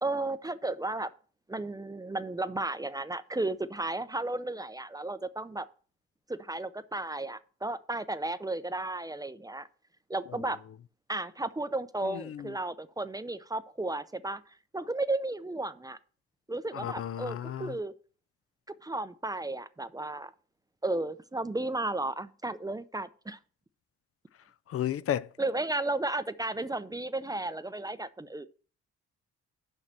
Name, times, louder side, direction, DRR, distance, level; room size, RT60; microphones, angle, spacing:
voice 1, 0.0-1.1 1.5-5.7 6.3-9.7 10.1-10.6 11.1-14.4 14.7-16.0 16.5-17.9 18.8-20.3 20.8-23.4 25.4-28.5, right 2 dB, 10° right, 0.5 m, -34 dB
voice 2, 12.0-12.5 16.7-17.7 24.7-25.3, left 11 dB, 50° left, 0.5 m, -33 dB
6.8 x 5.7 x 7.4 m
cardioid pair, 90°, 30 cm